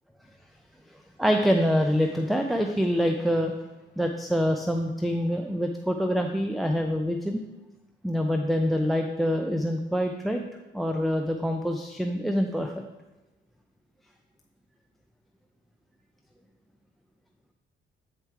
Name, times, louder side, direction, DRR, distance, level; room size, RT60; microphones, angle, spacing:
voice 1, 1.2-3.5 4.0-7.4 8.0-10.4 10.7-12.7, equal, ahead, 4 dB, 0.5 m, -25 dB
7.4 x 4.5 x 4.5 m, 1.1 s
cardioid pair, 90°, 20 cm